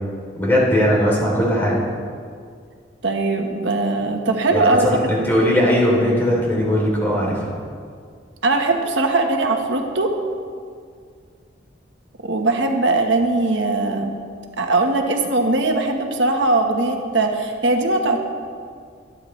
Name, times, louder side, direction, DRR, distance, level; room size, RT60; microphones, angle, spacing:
voice 1, 0.3-1.8 4.5-7.5, equal, 10° left, -4 dB, 3.1 m, -19 dB
voice 2, 3.0-5.1 8.4-10.1 12.2-14.1 14.6-18.2, right 2 dB, 80° right, 3 dB, 1.2 m, -20 dB
25.0 x 9.4 x 3.2 m, 2.1 s
head